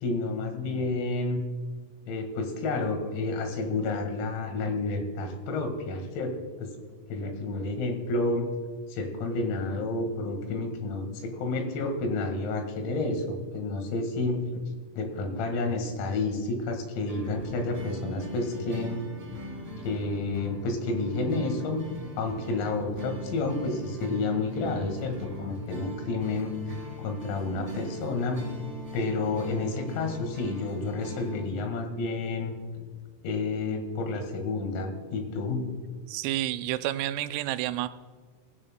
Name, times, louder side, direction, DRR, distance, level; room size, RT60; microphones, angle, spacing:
voice 1, 0.0-1.4 2.1-6.7 7.1-8.5 8.9-14.6 15.0-19.0 19.8-21.8 22.2-26.6 27.0-28.5 28.9-32.5 33.2-35.7, left 3 dB, 85° left, 4 dB, 4.5 m, -30 dB
sound 1, 17.1-31.4, equal, 20° right, 2.5 m, -40 dB
voice 2, 36.1-37.9, right 14 dB, 85° right, 11 dB, 3.2 m, -30 dB
19.0 x 16.5 x 2.2 m, 1.5 s
omnidirectional pair, 6.0 m